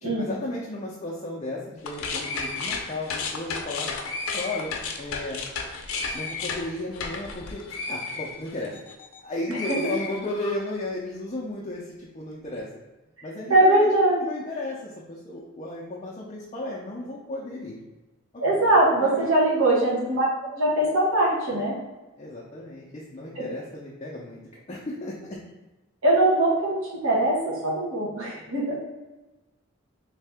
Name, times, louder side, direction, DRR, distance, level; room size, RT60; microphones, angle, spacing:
voice 1, 0.0-3.9 4.3-5.4 6.1-7.6 7.9-8.7 9.2-12.7 13.2-13.9 14.2-17.8 18.3-19.4 19.9-20.0 22.2-24.4 24.7-25.4, left 2 dB, 30° left, -4 dB, 0.5 m, -34 dB
sound 1, 1.8-9.2 9.5-10.7, left 4 dB, 80° left, 0.5 m, -33 dB
voice 2, 13.5-14.2 18.4-21.7 23.3-23.4 26.0-28.7, right 1 dB, 90° right, -5 dB, 1.1 m, -21 dB
3.3 x 2.7 x 3.4 m, 1.1 s
head